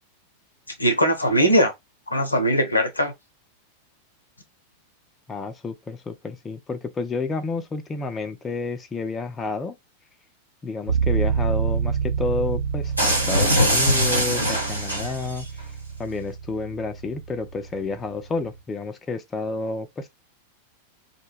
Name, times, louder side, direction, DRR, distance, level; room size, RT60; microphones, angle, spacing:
voice 1, 0.8-1.7 2.1-3.1, equal, 80° left, 0.6 m, -20 dB
voice 2, 5.3-9.8 10.6-15.5 16.0-20.1, left 3 dB, 20° left, 0.4 m, -30 dB
sound 1, 10.9-18.6, right 7 dB, 70° right, 0.6 m, -28 dB
sound 2, 13.0-15.4, equal, 85° right, 1.0 m, -22 dB
2.1 x 2.1 x 3.1 m
figure-of-eight pair, 90°, 0 cm